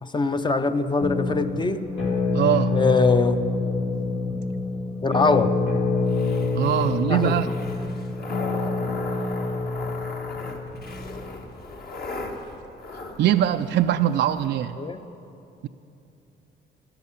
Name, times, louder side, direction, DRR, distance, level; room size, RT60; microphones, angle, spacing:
voice 1, 0.0-1.9 2.7-3.4 5.0-5.5 7.1-7.6 14.8-15.1, left 3 dB, 25° left, 9 dB, 0.6 m, -23 dB
sound 1, 1.0-10.9, left 3 dB, 75° left, 2.2 m, -26 dB
voice 2, 2.3-2.8 6.5-7.5 13.2-14.8, right 11 dB, 60° right, 9 dB, 0.4 m, -22 dB
sound 2, 6.0-14.5, left 2 dB, 50° left, 1.5 m, -38 dB
11.5 x 11.0 x 8.3 m, 2.9 s
cardioid pair, 90°, 20 cm